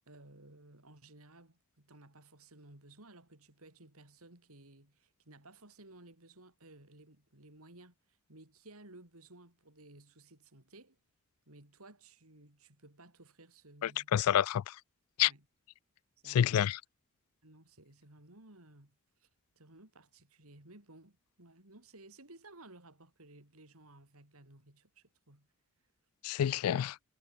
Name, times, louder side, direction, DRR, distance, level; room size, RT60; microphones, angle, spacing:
voice 1, 0.1-11.0 11.5-14.1 15.2-15.5 16.2-16.8 17.4-19.3 19.6-25.5, right 2 dB, 80° right, 4.5 m, -57 dB
voice 2, 13.8-14.7 15.2-15.3 16.3-16.8 26.2-27.0, left 10 dB, 85° left, 0.3 m, -28 dB
head